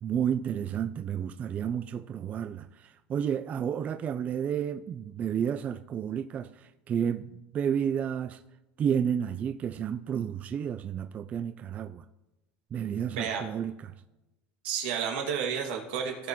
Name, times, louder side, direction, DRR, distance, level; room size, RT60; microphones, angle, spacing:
voice 1, 0.0-8.4 8.8-12.1 12.7-13.9, right 8 dB, 25° right, 0.3 m, -31 dB
voice 2, 13.1-13.5 14.6-16.3, right 7 dB, 85° right, 2.2 m, -31 dB
17.0 x 5.9 x 3.0 m
supercardioid pair, 150°, 5 cm